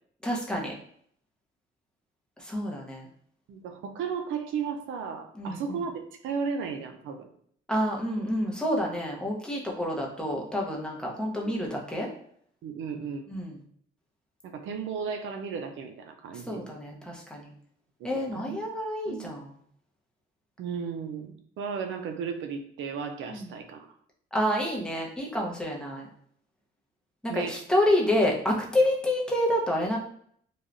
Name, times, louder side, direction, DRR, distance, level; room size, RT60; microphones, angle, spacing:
voice 1, 0.2-0.7 2.4-3.1 5.3-5.8 7.7-12.1 13.3-13.6 16.3-17.5 18.0-19.5 23.3-23.5 24.3-26.1 27.2-30.0, left 1 dB, 5° left, -2 dB, 0.8 m, -28 dB
voice 2, 3.5-5.9 6.2-7.3 11.4-11.5 12.6-13.3 14.4-16.7 18.0-18.6 19.1-19.3 20.6-23.9 27.3-27.6, right 6 dB, 80° right, 6 dB, 0.5 m, -35 dB
3.1 x 2.3 x 2.5 m, 0.64 s
cardioid pair, 90°, 20 cm